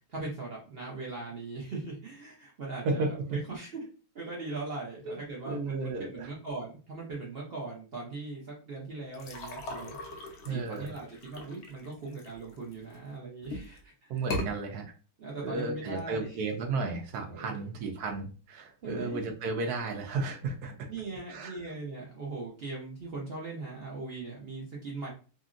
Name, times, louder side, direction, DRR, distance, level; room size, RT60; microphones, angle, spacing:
voice 1, 0.1-3.7 4.1-14.2 15.2-16.4 17.3-17.7 18.8-19.2 20.9-25.1, right 3 dB, 55° right, -3 dB, 0.7 m, -40 dB
voice 2, 2.8-3.4 5.0-5.2 5.5-6.3 10.4-10.9 14.1-14.9 15.4-20.9 21.3-21.7, right 3 dB, 70° right, 4 dB, 1.1 m, -33 dB
sound 1, 9.1-12.9 13.4-13.8 14.2-14.5, left 1 dB, 80° left, 0.6 m, -39 dB
2.9 x 2.6 x 2.4 m, 0.36 s
omnidirectional pair, 1.8 m